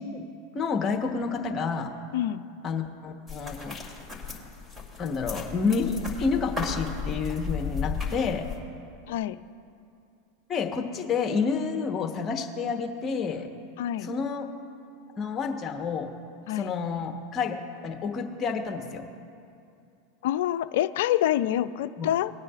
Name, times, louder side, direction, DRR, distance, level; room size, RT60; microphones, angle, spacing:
voice 1, 0.5-1.9 2.6-3.8 5.0-8.5 10.5-13.5 14.0-14.5 15.2-16.1 16.5-17.6 17.8-19.0 22.0-22.1, left 5 dB, 30° left, 4 dB, 1.1 m, -29 dB
voice 2, 2.1-2.4 9.1-9.4 13.8-14.1 16.5-16.7 20.2-22.3, left 12 dB, 70° left, 14 dB, 0.4 m, -26 dB
sound 1, 3.3-8.6, left 5 dB, 5° right, 2.9 m, -35 dB
20.5 x 9.4 x 2.5 m, 2.6 s
hypercardioid pair, 95°, 0 cm